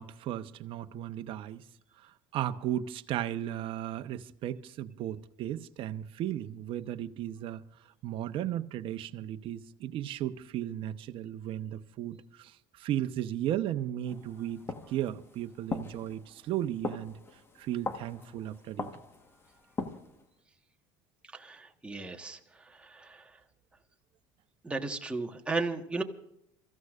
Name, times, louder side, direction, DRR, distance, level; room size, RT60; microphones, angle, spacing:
voice 1, 0.0-1.6 2.0-7.6 8.0-17.2 17.6-18.9, right 11 dB, 55° right, 0.9 m, -35 dB
sound 1, 14.1-20.3, left 3 dB, 20° left, 1.3 m, -41 dB
voice 2, 21.3-22.4 22.8-23.2 24.6-26.0, right 3 dB, 10° right, 1.4 m, -35 dB
27.0 x 15.0 x 2.5 m
supercardioid pair, 115°, 11 cm